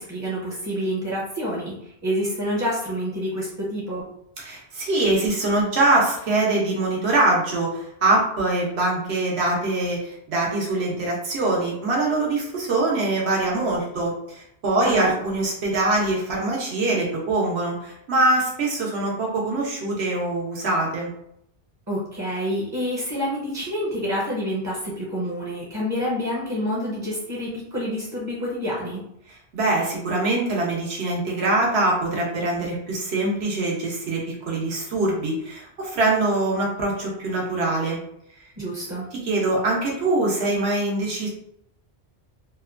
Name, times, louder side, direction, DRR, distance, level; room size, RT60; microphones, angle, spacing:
voice 1, 0.0-4.1 14.8-15.1 21.9-29.0 38.6-39.1, equal, 25° right, -5 dB, 0.4 m, -28 dB
voice 2, 4.4-21.1 29.5-38.0 39.1-41.3, right 2 dB, 90° right, -2 dB, 1.1 m, -23 dB
2.8 x 2.1 x 2.4 m, 0.74 s
omnidirectional pair, 1.1 m